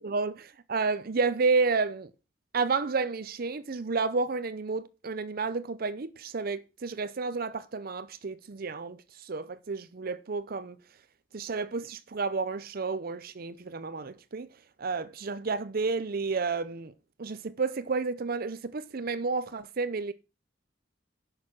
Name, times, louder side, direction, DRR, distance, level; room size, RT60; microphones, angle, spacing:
voice 1, 0.0-2.1 2.5-10.8 11.3-14.5 14.8-16.9 17.2-20.1, right 4 dB, 50° right, 0.6 m, -31 dB
10.5 x 6.6 x 6.0 m
head